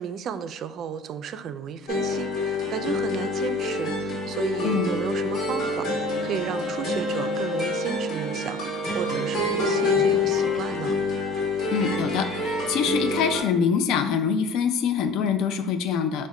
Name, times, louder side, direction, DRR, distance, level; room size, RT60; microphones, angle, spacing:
voice 1, 0.0-11.0, right 7 dB, 45° right, 11 dB, 0.3 m, -33 dB
sound 1, 1.9-13.4, left 2 dB, 45° left, 1.6 m, -27 dB
sound 2, 8.9-11.1 11.3-11.4 11.8-13.4, left 1 dB, 10° left, 0.9 m, -38 dB
voice 2, 11.7-16.3, left 7 dB, 65° left, 9 dB, 0.4 m, -24 dB
5.3 x 2.1 x 4.7 m, 0.89 s
cardioid pair, 155°, 0 cm